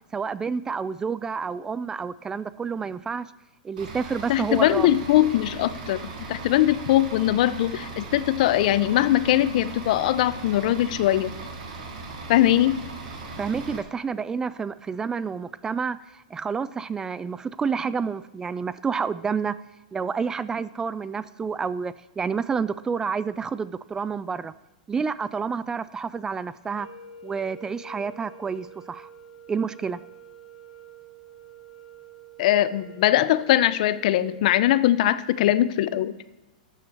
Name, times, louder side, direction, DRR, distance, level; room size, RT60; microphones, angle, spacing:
voice 1, 0.1-3.3 3.6-4.9 13.4-19.5 19.9-24.5 24.9-26.9 27.2-29.1 29.5-30.0, right 5 dB, 15° right, 17 dB, 0.3 m, -29 dB
Bus / Idling, 3.8-13.8, right 3 dB, 65° right, 3.3 m, -38 dB
voice 2, 4.3-11.3 12.3-12.8 32.4-36.1, left 13 dB, 60° left, 16 dB, 0.7 m, -21 dB
sound 1, 26.6-34.8, right 4 dB, 90° left, 2.1 m, -47 dB
13.0 x 6.8 x 6.8 m, 1.1 s
hypercardioid pair, 135°, 5 cm